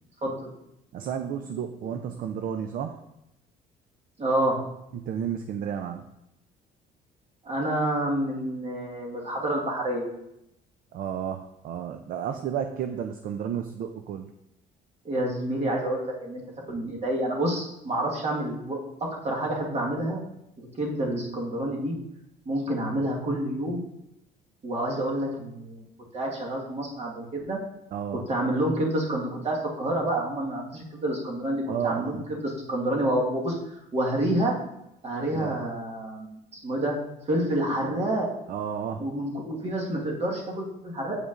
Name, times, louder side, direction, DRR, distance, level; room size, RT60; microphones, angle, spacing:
voice 1, 0.2-0.5 4.2-4.6 7.4-10.1 15.0-16.4 16.7-18.8 19.2-20.2 20.6-21.9 22.4-23.8 24.6-25.8 26.1-27.6 28.3-33.6 33.9-34.5 35.0-36.4 36.6-37.0 37.3-38.3 39.0-41.2, right 1 dB, 40° right, -2 dB, 1.5 m, -28 dB
voice 2, 0.9-3.0 4.9-6.1 10.9-14.3 27.9-28.2 31.7-32.3 35.3-35.5 38.5-39.1, right 8 dB, 55° right, 7 dB, 0.4 m, -32 dB
8.1 x 5.1 x 2.5 m, 0.83 s
cardioid pair, 110°, 17 cm